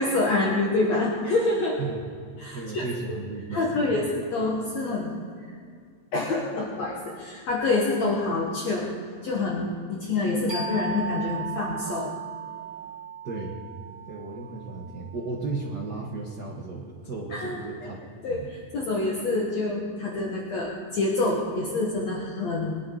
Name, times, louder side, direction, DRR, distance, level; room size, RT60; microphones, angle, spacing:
voice 1, 0.0-1.8 2.4-2.8 3.5-5.5 6.1-8.9 9.2-12.1 17.3-17.9 18.2-22.8, left 2 dB, 60° left, -2 dB, 2.3 m, -27 dB
voice 2, 2.5-4.0 13.2-13.6 14.1-18.0 18.3-18.5, right 3 dB, 65° right, -2 dB, 1.0 m, -34 dB
sound 1, 10.5-15.8, right 6 dB, 40° right, 2.1 m, -37 dB
22.0 x 10.5 x 3.9 m, 2.3 s
omnidirectional pair, 3.9 m